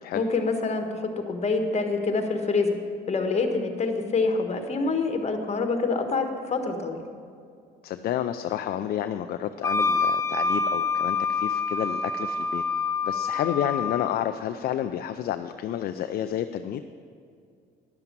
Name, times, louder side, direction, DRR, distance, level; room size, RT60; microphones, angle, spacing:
voice 1, 0.1-2.8 3.1-7.1, left 4 dB, 40° left, 5 dB, 1.5 m, -26 dB
voice 2, 7.8-12.6 13.0-16.8, left 10 dB, 60° left, 9 dB, 0.5 m, -30 dB
Wind instrument woodwind instrument, 9.6-14.1, left 4 dB, 15° left, 0.9 m, -26 dB
11.0 x 6.8 x 7.4 m, 2.3 s
supercardioid pair, 80°, 18 cm